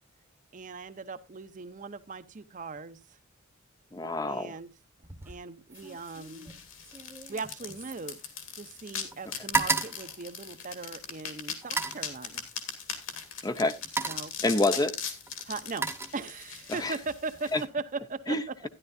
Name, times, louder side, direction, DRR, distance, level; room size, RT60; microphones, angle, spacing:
voice 1, 0.5-3.0 4.2-4.7 5.3-6.5 7.3-8.2 8.6-12.5 14.1-14.3 15.5-18.4 18.6-18.7, right 4 dB, 35° right, 12 dB, 0.6 m, -39 dB
voice 2, 3.9-4.5 13.4-13.8 14.4-14.9 16.7-17.0 17.5-17.6 18.3-18.7, left 2 dB, 15° left, 11 dB, 0.5 m, -27 dB
sound 1, 5.0-5.4 5.7-8.8 9.1-11.0 11.6-12.1 13.1-13.3 13.7-14.4 15.3-16.6 17.0-17.4, right 4 dB, 10° right, 0.8 m, -34 dB
sound 2, 5.8-17.6, left 7 dB, 60° left, 2.2 m, -40 dB
13.0 x 11.0 x 2.6 m, 0.23 s
head